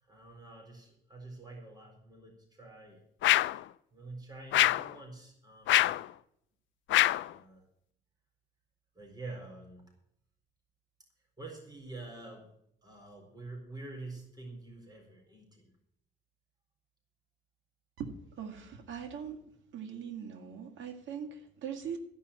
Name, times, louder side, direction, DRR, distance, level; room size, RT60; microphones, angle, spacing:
voice 1, 0.1-3.0 3.9-5.8 7.2-7.7 8.9-9.8 11.4-12.5 12.8-15.7, right 2 dB, 20° right, 1 dB, 4.3 m, -47 dB
sound 1, 3.2-3.6 4.5-4.9 5.7-6.1 6.9-7.3, left 15 dB, 70° left, 0.4 m, -25 dB
voice 2, 18.0-19.4 19.7-22.0, right 7 dB, 75° right, 3 dB, 2.0 m, -41 dB
14.0 x 5.7 x 8.8 m, 0.75 s
cardioid pair, 90°, 20 cm